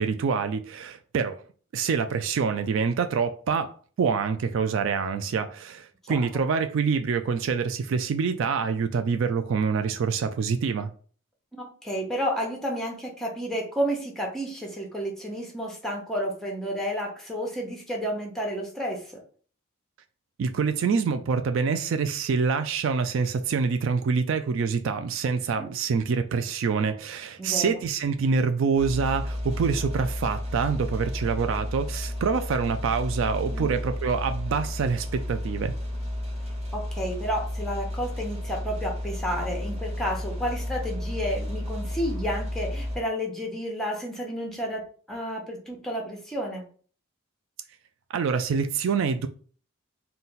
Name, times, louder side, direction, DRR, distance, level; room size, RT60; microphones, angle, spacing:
voice 1, 0.0-1.4 1.7-10.9 20.4-35.7 48.1-49.3, right 5 dB, 65° right, 0.3 m, -26 dB
voice 2, 11.5-19.2 25.6-25.7 27.4-27.8 33.5-33.8 36.7-44.8 45.1-46.6, equal, ahead, 0.9 m, -31 dB
sound 1, 28.8-43.0, left 1 dB, 30° right, 0.8 m, -32 dB
4.0 x 2.2 x 3.9 m
head